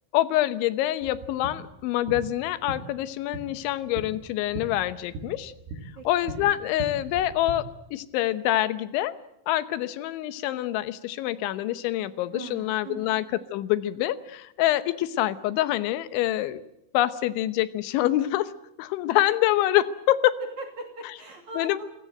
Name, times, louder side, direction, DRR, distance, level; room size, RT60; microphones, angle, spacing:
voice 1, 0.1-5.5 6.1-9.1 9.5-16.6 16.9-18.5 18.8-20.3 21.6-21.9, left 14 dB, 75° left, 13 dB, 3.3 m, -26 dB
sound 1, 1.0-7.5, right 3 dB, 85° right, 5.5 m, -40 dB
voice 2, 6.0-6.5 12.3-13.2 20.4-21.9, right 2 dB, 45° right, 4 dB, 3.4 m, -40 dB
29.5 x 17.0 x 7.8 m, 0.87 s
omnidirectional pair, 5.6 m